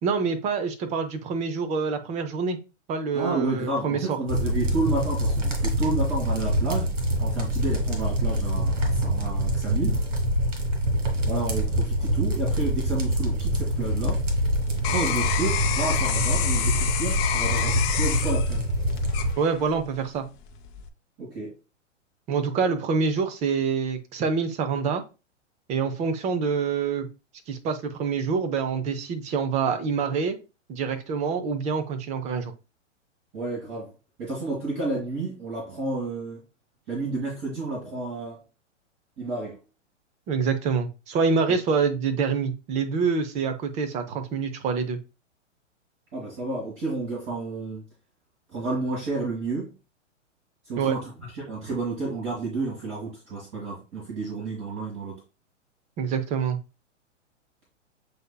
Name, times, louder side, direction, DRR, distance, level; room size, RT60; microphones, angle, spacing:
voice 1, 0.0-2.6 2.9-4.2 19.4-20.3 22.3-25.0 25.7-27.1 27.5-30.4 30.7-32.5 40.3-45.0 50.8-51.0 56.0-56.6, right 5 dB, 20° right, 0.5 m, -26 dB
voice 2, 3.1-6.9 7.2-10.0 11.2-14.2 14.8-18.6 21.2-21.5 33.3-33.9 34.2-36.4 36.9-38.4 39.2-39.6 46.1-47.8 48.5-49.7 50.7-55.1, right 3 dB, 35° right, 1.8 m, -31 dB
sound 1, 4.3-19.3, equal, 70° right, 1.9 m, -25 dB
sound 2, 13.7-19.9 20.4-20.9, left 10 dB, 30° left, 0.6 m, -29 dB
7.8 x 2.7 x 2.2 m
hypercardioid pair, 120°, 37 cm